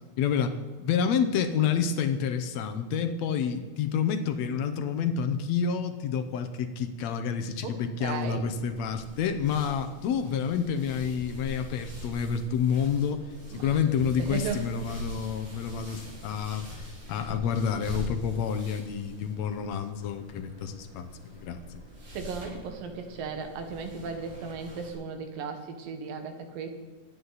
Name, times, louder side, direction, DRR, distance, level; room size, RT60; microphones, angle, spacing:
voice 1, 0.2-13.3 13.5-21.6, left 7 dB, 70° left, 8 dB, 1.8 m, -29 dB
voice 2, 7.6-8.5 13.5-13.8 14.3-14.6 22.1-26.7, right 5 dB, 85° right, 6 dB, 3.1 m, -36 dB
sound 1, 8.2-24.9, equal, 55° right, 6.1 m, -43 dB
24.0 x 9.6 x 4.1 m, 1.3 s
omnidirectional pair, 3.9 m